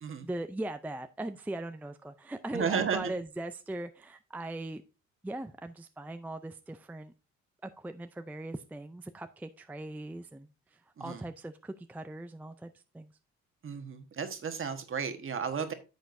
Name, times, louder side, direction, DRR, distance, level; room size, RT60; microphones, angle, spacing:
voice 1, 0.2-4.8 5.2-7.1 7.6-13.1, right 1 dB, 5° right, 9 dB, 0.4 m, -40 dB
voice 2, 2.5-3.1 11.0-11.2 13.6-15.7, right 6 dB, 45° right, 7 dB, 1.3 m, -33 dB
10.5 x 6.3 x 2.6 m, 0.30 s
cardioid pair, 90°, 30 cm